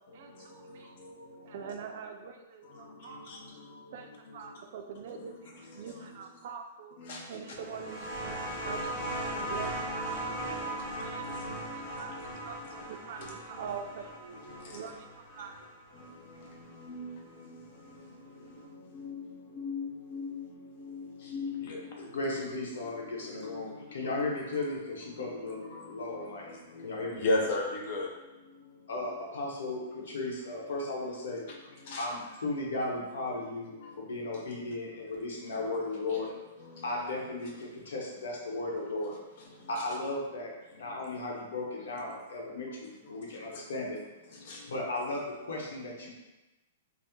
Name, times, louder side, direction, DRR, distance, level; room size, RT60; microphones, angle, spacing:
voice 1, 0.1-0.9 1.4-3.4 3.9-7.0 7.3-10.4 10.8-11.4 11.8-14.4 14.7-15.7, right 6 dB, 55° right, 5 dB, 0.3 m, -44 dB
voice 2, 0.6-1.7 2.7-4.4 5.2-5.3 5.5-6.1 7.0-7.5 8.3-9.7 10.1-10.2 10.5-12.2 13.2-13.3 14.4-14.8 16.0-17.6 18.2-22.5 23.0-24.3 24.5-24.8 25.1-28.1 31.5-31.6 31.8-32.1 33.7-33.9 36.1-36.3 36.6-37.1 39.6-40.0 40.8-40.9 43.0-43.5 44.5-44.6 45.5-45.7, left 2 dB, 50° left, -1 dB, 0.6 m, -40 dB
sound 1, 7.5-16.8 17.9-18.0, right 1 dB, 15° left, 0.8 m, -38 dB
voice 3, 22.1-27.2 28.9-31.5 32.0-36.3 36.8-39.1 39.7-44.0 44.7-46.1, left 2 dB, 90° left, -2 dB, 0.9 m, -36 dB
2.8 x 2.0 x 3.5 m, 1.0 s
hypercardioid pair, 165°, 0 cm